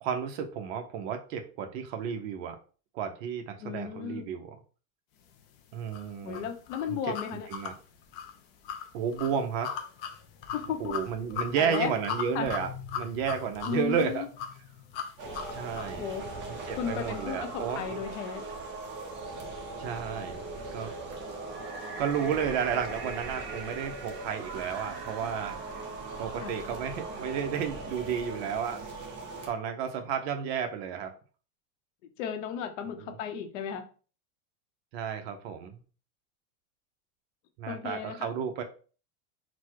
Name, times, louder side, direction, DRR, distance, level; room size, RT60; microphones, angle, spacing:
voice 1, 0.0-2.6 2.9-4.6 5.7-6.5 6.9-7.0 7.5-7.7 8.9-9.7 10.8-12.7 12.9-14.2 15.5-16.1 16.5-18.0 19.8-20.4 20.7-20.9 22.0-25.6 26.2-28.8 29.5-31.1 32.9-33.2 34.9-35.8 37.6-38.6, right 7 dB, 50° right, 6 dB, 0.8 m, -32 dB
voice 2, 3.6-4.3 6.2-7.5 10.5-10.9 11.6-11.9 12.3-12.5 13.7-14.3 16.0-16.2 16.8-18.4 26.4-26.5 32.2-33.8 37.7-38.3, left 8 dB, 60° left, 7 dB, 0.9 m, -34 dB
sound 1, 5.9-16.0, left 8 dB, 25° left, 0.4 m, -39 dB
sound 2, 15.2-29.5, right 3 dB, 25° right, 0.9 m, -39 dB
4.1 x 2.2 x 4.5 m, 0.38 s
supercardioid pair, 150°, 42 cm